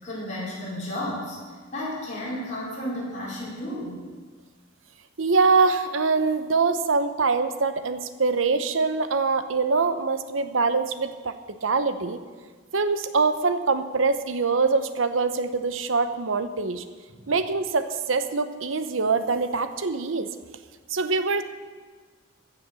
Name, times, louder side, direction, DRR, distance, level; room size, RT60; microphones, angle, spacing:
voice 1, 0.0-4.0 17.1-17.3, left 1 dB, 40° left, -7 dB, 4.6 m, -33 dB
voice 2, 5.2-11.3 11.6-12.2 12.7-16.8 17.3-20.3 20.9-21.4, right 4 dB, 85° right, 10 dB, 0.9 m, -24 dB
15.0 x 6.9 x 6.9 m, 1.5 s
head